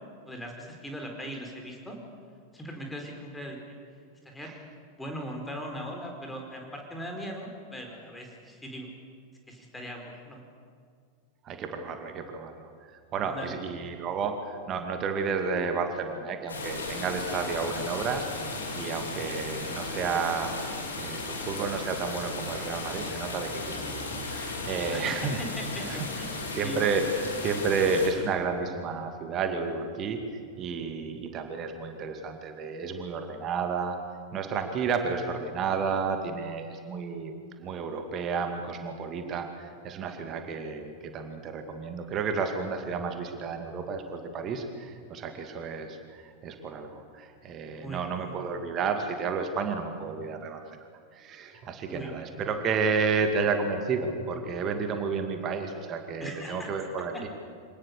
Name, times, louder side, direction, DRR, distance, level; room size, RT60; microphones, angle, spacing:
voice 1, 0.2-2.0 2.5-3.8 4.2-4.5 5.0-8.9 9.5-10.4 13.2-13.5 23.8-24.0 24.9-26.3 26.6-26.8 47.8-48.4 51.9-52.1 56.2-56.7 57.1-57.3, equal, 5° left, 2 dB, 4.6 m, -39 dB
voice 2, 11.4-18.3 18.7-20.5 21.0-25.4 25.9-26.1 26.5-27.1 27.4-30.2 30.6-34.0 34.3-50.6 51.1-57.3, right 5 dB, 30° right, 6 dB, 2.3 m, -31 dB
sound 1, 16.5-28.1, left 3 dB, 70° left, 3.8 m, -35 dB
26.0 x 19.0 x 6.8 m, 2.2 s
figure-of-eight pair, 90°, 0 cm